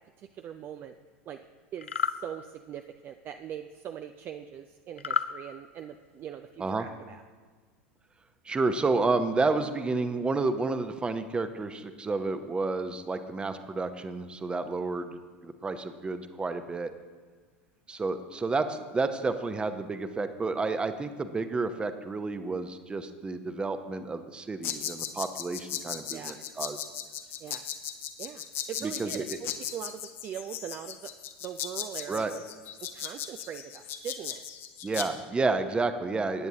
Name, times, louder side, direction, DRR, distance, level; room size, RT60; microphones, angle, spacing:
voice 1, 0.2-1.0 1.3-1.4 1.7-7.2 26.1-26.9 27.4-31.1 31.4-32.4 32.8-34.4, right 9 dB, 35° right, 8 dB, 0.4 m, -42 dB
sound 1, 1.8-2.2 5.0-5.3, left 7 dB, 80° left, 0.4 m, -29 dB
voice 2, 8.4-16.9 17.9-26.8 28.8-29.4 32.1-32.3 34.8-36.5, right 3 dB, 15° right, 9 dB, 0.8 m, -30 dB
sound 2, 24.6-35.1, left 9 dB, 40° left, 0.9 m, -37 dB
18.5 x 9.3 x 2.8 m, 1.5 s
figure-of-eight pair, 80°, 6 cm